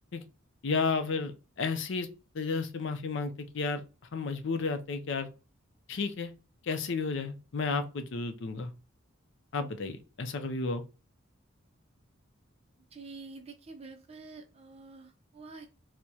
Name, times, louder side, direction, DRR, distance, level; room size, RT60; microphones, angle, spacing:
voice 1, 0.6-2.1 2.3-3.8 4.1-5.3 5.9-6.3 6.6-8.7 9.5-10.8, left 4 dB, 65° left, 0.5 m, -32 dB
voice 2, 12.9-15.7, right 3 dB, 30° right, 0.5 m, -47 dB
4.5 x 2.1 x 2.7 m
head